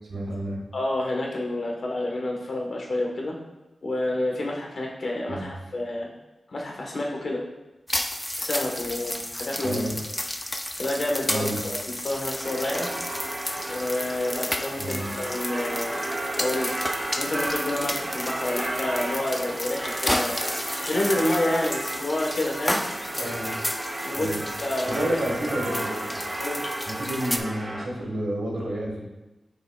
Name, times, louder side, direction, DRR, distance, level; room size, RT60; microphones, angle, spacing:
voice 1, 0.1-0.6 5.3-5.5 9.6-10.0 11.3-11.6 14.8-15.1 23.1-23.5 24.2-24.4 24.9-26.2 26.9-29.0, right 1 dB, 75° right, -2 dB, 1.8 m, -30 dB
voice 2, 0.7-3.4 3.8-6.1 6.5-7.4 8.3-9.8 10.8-12.9 13.7-16.0 16.4-16.7 17.2-20.4 20.8-22.8 24.0-25.0 26.4-26.6, left 1 dB, 65° left, -1 dB, 1.4 m, -29 dB
sound 1, 7.9-27.4, left 1 dB, 15° left, 0.5 m, -32 dB
sound 2, 12.4-27.9, right 1 dB, 30° right, 1.1 m, -33 dB
8.5 x 4.8 x 2.4 m, 1.0 s
cardioid pair, 55°, 0 cm